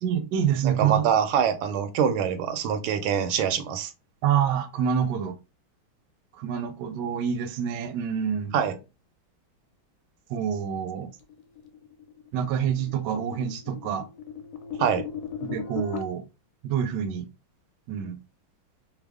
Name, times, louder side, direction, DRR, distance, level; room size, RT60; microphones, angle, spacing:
voice 1, 0.0-1.1 4.2-5.3 6.3-8.5 10.3-11.1 12.3-14.1 15.4-16.2 16.6-17.3 17.9-18.2, right 8 dB, 75° right, 1.0 m, -27 dB
voice 2, 0.6-3.9 8.5-8.8 14.8-15.0, right 8 dB, 90° right, 1.4 m, -24 dB
sound 1, 11.3-16.0, left 7 dB, 80° left, 1.4 m, -38 dB
3.5 x 2.0 x 3.4 m
omnidirectional pair, 2.2 m